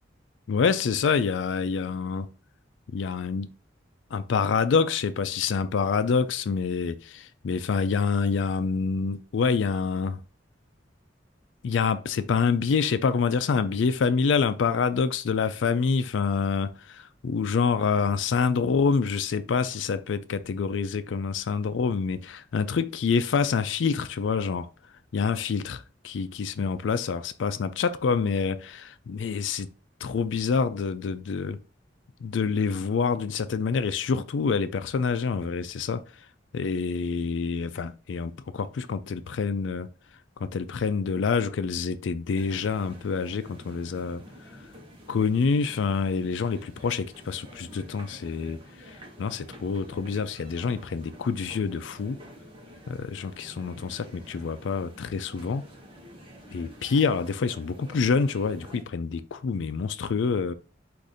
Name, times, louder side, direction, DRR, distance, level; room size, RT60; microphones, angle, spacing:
voice 1, 0.5-2.3 2.9-3.5 4.1-10.2 11.6-24.7 25.1-29.7 30.0-31.6 32.2-36.0 36.5-39.9 40.4-44.2 45.1-48.6 48.9-52.2 52.9-55.6 56.5-60.5, left 5 dB, 90° left, 0.4 m, -27 dB
sound 1, 42.3-58.8, equal, 30° right, 1.1 m, -48 dB
4.9 x 2.6 x 4.0 m
head